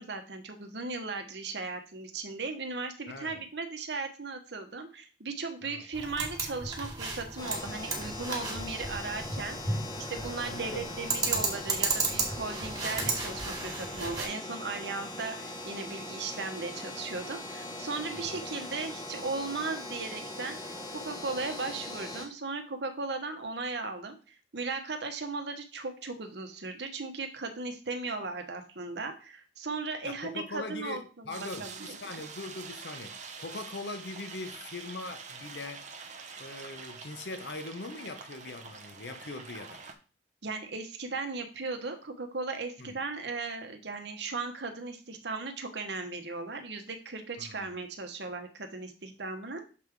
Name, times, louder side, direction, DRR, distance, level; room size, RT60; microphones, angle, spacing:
voice 1, 0.0-20.6 20.9-32.0 40.4-49.6, right 3 dB, 70° right, 1.1 m, -37 dB
voice 2, 3.1-3.4 5.6-5.8 10.4-10.9 11.2-11.5 18.1-18.5 30.0-35.9 36.4-39.8 42.8-43.0 47.4-47.8, left 2 dB, 75° left, 1.0 m, -41 dB
sound 1, 5.9-14.3, right 3 dB, 20° right, 2.1 m, -34 dB
sound 2, 7.4-22.3, left 1 dB, 25° left, 1.2 m, -41 dB
sound 3, 31.3-39.9, right 5 dB, 45° right, 0.8 m, -46 dB
7.2 x 3.7 x 4.7 m
head